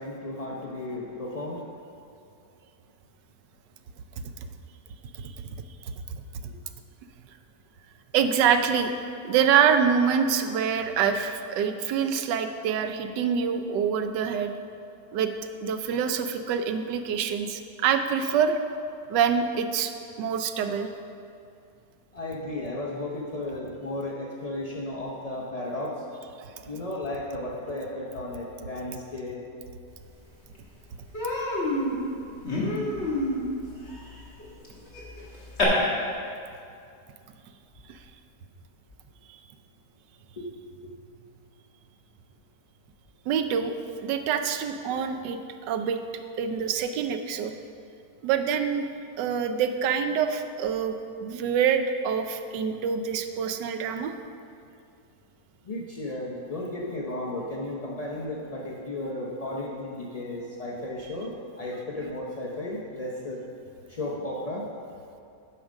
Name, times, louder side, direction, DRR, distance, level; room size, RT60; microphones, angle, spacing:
voice 1, 0.0-1.8 6.5-6.6 22.1-25.9 26.7-29.5 40.4-40.5 40.8-40.9 55.7-63.4 63.9-64.7, left 1 dB, 60° left, -3 dB, 0.4 m, -34 dB
voice 2, 8.1-8.9 9.2-14.5 15.1-15.3 15.6-18.6 19.1-19.9 20.2-20.9 43.3-43.7 44.0-45.4 45.7-46.0 46.4-47.5 48.2-48.9 49.2-51.0 51.2-54.1, right 7 dB, 90° right, 8 dB, 1.3 m, -25 dB
Human voice, 30.1-30.2 30.5-30.7 31.1-35.6, left 1 dB, 40° left, 1.8 m, -30 dB
9.8 x 5.1 x 6.2 m, 2.5 s
omnidirectional pair, 1.8 m